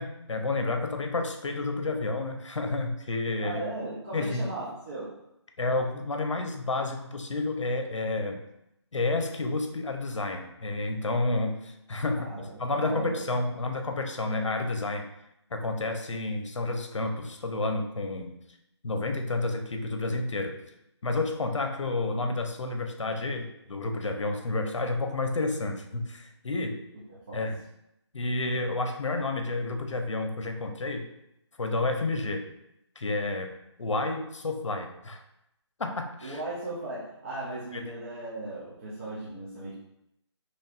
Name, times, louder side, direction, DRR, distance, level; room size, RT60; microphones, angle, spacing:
voice 1, 0.0-3.6 4.1-4.5 5.6-8.4 8.9-15.1 15.5-18.3 18.8-20.6 21.0-26.8 27.3-27.6 28.1-31.1 31.6-32.5 33.0-33.5 33.8-35.2 35.8-36.4 37.7-37.8, left 2 dB, 85° left, 5 dB, 0.6 m, -30 dB
voice 2, 3.4-5.1 12.1-13.6 27.1-27.4 36.2-39.8, right 2 dB, 25° right, -8 dB, 0.5 m, -37 dB
4.4 x 3.0 x 2.4 m, 0.84 s
figure-of-eight pair, 165°, 15 cm